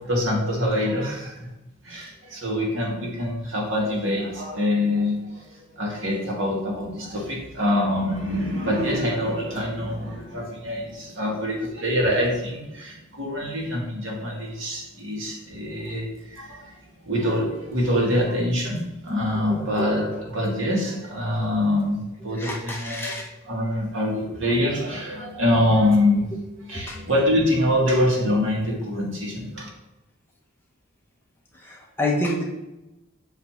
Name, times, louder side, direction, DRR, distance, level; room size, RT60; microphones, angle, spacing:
voice 1, 0.0-1.4 1.8-5.4 5.7-16.8 17.0-23.1 23.5-26.3 26.7-29.7, left 1 dB, 65° right, -2 dB, 1.9 m, -25 dB
voice 2, 19.5-20.2 22.3-23.3 24.8-24.9 26.7-27.0 31.6-32.4, left 1 dB, 10° left, -2 dB, 1.0 m, -29 dB
7.6 x 3.3 x 5.8 m, 0.97 s
head